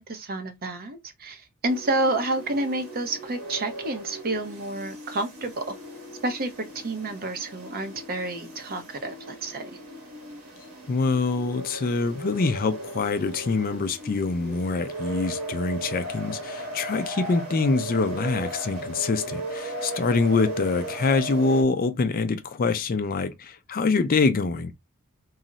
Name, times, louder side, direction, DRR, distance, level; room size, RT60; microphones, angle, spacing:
voice 1, 0.0-5.6 6.2-9.8, right 2 dB, 45° right, 0.6 m, -29 dB
sound 1, 1.7-21.6, right 1 dB, 85° right, 1.0 m, -37 dB
voice 2, 10.9-24.7, left 4 dB, 40° left, 0.4 m, -25 dB
2.3 x 2.0 x 3.9 m
head